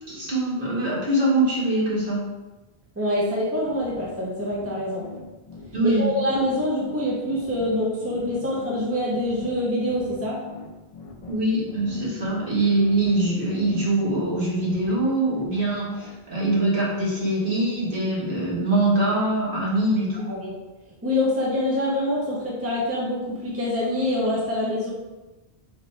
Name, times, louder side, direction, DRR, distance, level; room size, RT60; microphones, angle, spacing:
voice 1, 0.1-2.2 5.7-6.1 11.3-20.3, right 2 dB, 55° right, -7 dB, 1.7 m, -23 dB
voice 2, 3.0-5.0 5.8-10.4 20.3-20.5 21.0-24.9, left 1 dB, 15° right, -5 dB, 0.8 m, -25 dB
sound 1, 3.6-16.2, left 5 dB, 60° left, 0.3 m, -40 dB
4.1 x 3.0 x 4.2 m, 1.1 s
omnidirectional pair, 1.1 m